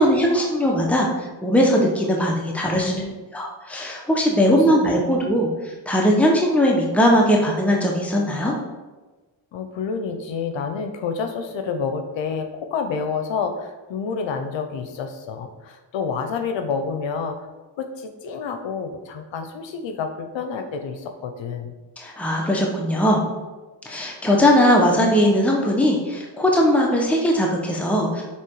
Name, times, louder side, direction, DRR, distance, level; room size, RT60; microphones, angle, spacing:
voice 1, 0.0-2.9 3.3-8.5 22.0-23.2 23.8-28.2, equal, 5° left, -1 dB, 1.3 m, -19 dB
voice 2, 2.8-3.2 4.4-4.7 9.5-17.5 17.8-21.7, left 5 dB, 75° left, 7 dB, 0.8 m, -29 dB
7.4 x 3.5 x 4.8 m, 1.2 s
cardioid pair, 70°, 45 cm